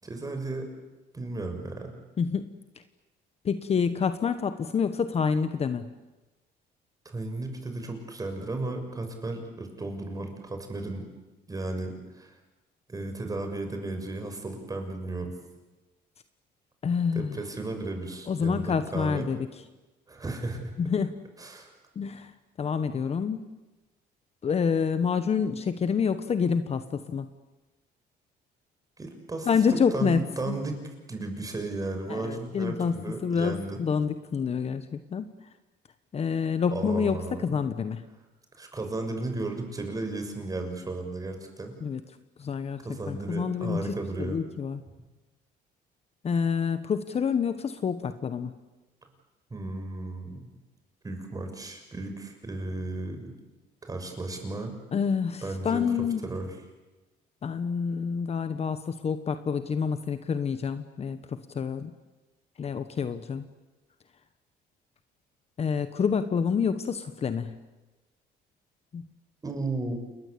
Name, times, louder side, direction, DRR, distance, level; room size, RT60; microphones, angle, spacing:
voice 1, 0.0-0.7 1.1-1.9 7.0-11.1 11.5-12.3 12.9-15.3 17.1-19.3 20.1-20.7 21.4-21.7 29.0-30.8 31.1-33.8 36.7-37.4 38.6-41.7 42.8-44.4 49.5-50.5 51.0-53.3 53.8-54.7 55.4-55.8 56.2-56.5 69.4-69.9, right 2 dB, 20° right, 5 dB, 6.5 m, -34 dB
voice 2, 2.2-2.5 3.4-5.9 16.8-17.4 18.3-19.5 20.8-21.1 21.9-22.3 22.6-23.5 24.4-27.3 29.5-30.2 30.5-30.6 32.1-35.3 36.1-38.0 41.8-42.0 42.4-43.9 44.2-44.8 46.2-48.5 54.9-56.3 57.4-61.9 62.6-63.5 65.6-67.6 68.9-69.0, left 6 dB, 40° left, 10 dB, 1.4 m, -28 dB
29.0 x 21.5 x 8.7 m, 1.1 s
cardioid pair, 110°, 17 cm